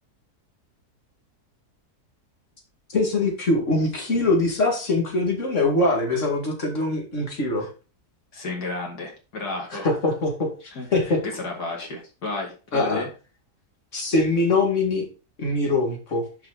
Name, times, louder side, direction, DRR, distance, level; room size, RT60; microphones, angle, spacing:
voice 1, 2.9-7.7 9.7-11.2 12.7-13.0 13.9-15.0 15.4-16.3, left 2 dB, 50° left, 1 dB, 2.5 m, -23 dB
voice 2, 8.3-9.9 10.7-13.1, left 3 dB, 85° left, 0 dB, 2.8 m, -32 dB
6.5 x 5.3 x 5.0 m, 0.32 s
omnidirectional pair, 1.6 m